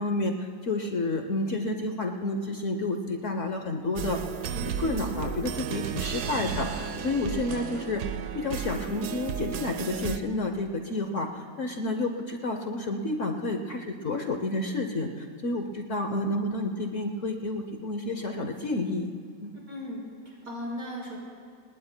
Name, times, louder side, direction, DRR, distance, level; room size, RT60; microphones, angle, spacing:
voice 1, 0.0-4.2 4.5-8.0 8.3-19.1 19.4-19.6, left 2 dB, 55° left, 5 dB, 1.1 m, -30 dB
sound 1, 4.0-10.2, right 7 dB, 75° right, 1.3 m, -33 dB
voice 2, 19.5-21.2, left 1 dB, 55° right, -5 dB, 4.8 m, -37 dB
27.0 x 20.0 x 2.2 m, 2.2 s
omnidirectional pair, 1.8 m